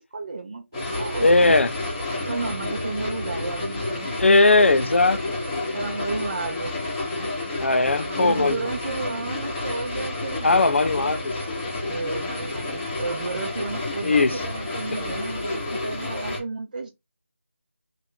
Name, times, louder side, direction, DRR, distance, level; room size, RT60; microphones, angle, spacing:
voice 1, 0.0-1.6 2.3-4.4 5.7-6.8 8.0-11.2 11.9-16.9, right 3 dB, 40° right, 0.6 m, -32 dB
sound 1, 0.7-16.4, left 2 dB, 15° left, 0.9 m, -30 dB
voice 2, 1.2-1.7 4.2-5.4 7.6-8.7 10.4-11.3 11.8-12.0 14.0-14.4, left 3 dB, 65° left, 0.5 m, -19 dB
3.3 x 2.5 x 3.7 m
figure-of-eight pair, 170°, 7 cm